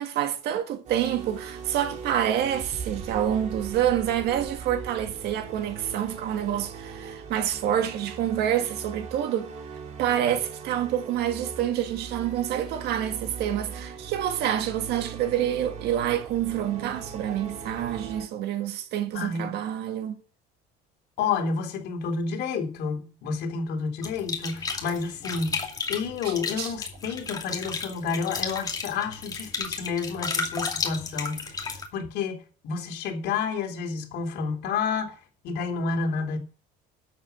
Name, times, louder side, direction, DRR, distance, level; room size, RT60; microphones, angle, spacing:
voice 1, 0.0-9.5 10.0-20.2 26.2-26.7, right 10 dB, 60° right, 1.9 m, -27 dB
sound 1, 0.9-18.3, right 6 dB, 35° right, 2.5 m, -39 dB
voice 2, 19.1-19.5 21.2-35.2 35.4-36.4, left 5 dB, 60° left, 3.2 m, -30 dB
sound 2, 24.0-31.9, left 4 dB, 20° left, 2.5 m, -33 dB
12.5 x 7.4 x 8.2 m
cardioid pair, 150°, 19 cm